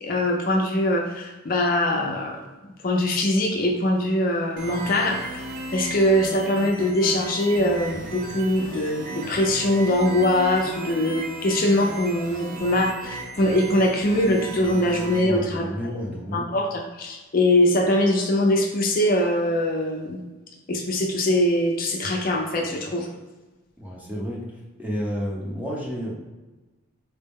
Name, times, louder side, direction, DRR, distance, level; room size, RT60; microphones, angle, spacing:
voice 1, 0.0-2.4 2.8-5.4 5.7-15.6 15.9-16.0 16.3-20.2 20.7-23.1, left 1 dB, 50° left, 1 dB, 0.5 m, -22 dB
sound 1, 4.6-15.2, right 2 dB, 45° right, 0.5 m, -36 dB
voice 2, 15.2-16.5 23.8-24.4 24.8-26.2, equal, 10° right, -4 dB, 0.8 m, -30 dB
4.1 x 2.1 x 3.5 m, 1.1 s
head